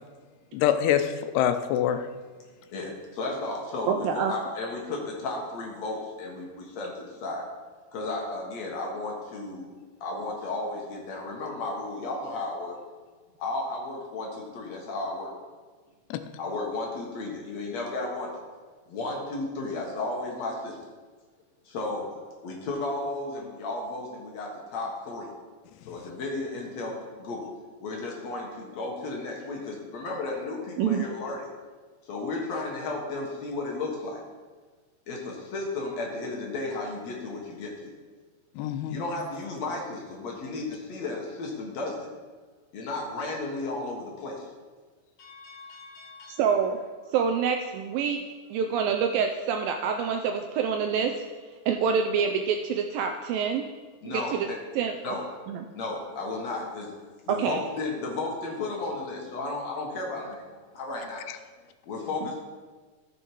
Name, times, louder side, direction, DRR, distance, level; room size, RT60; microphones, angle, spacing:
voice 1, 0.5-2.0 16.1-16.2 38.6-39.0, left 10 dB, 90° left, 9 dB, 2.8 m, -25 dB
voice 2, 2.7-7.5 7.9-9.7 10.0-12.8 13.4-15.3 16.4-18.4 18.9-20.8 21.7-22.1 22.4-25.3 25.9-27.5 27.8-31.5 32.0-34.2 35.1-37.9 38.9-42.1 42.7-44.5 45.2-46.4 54.0-54.6 55.0-55.3 55.7-56.9 57.3-61.2 61.9-62.4, left 2 dB, 55° left, -1 dB, 2.2 m, -34 dB
voice 3, 3.9-4.3 30.8-31.1 46.3-46.8 47.1-48.2 48.5-51.1 51.7-53.6 54.0-54.2 54.8-55.2 55.5-55.7 57.4-57.6, right 6 dB, 80° right, 5 dB, 2.1 m, -26 dB
14.0 x 7.1 x 4.6 m, 1.4 s
omnidirectional pair, 4.6 m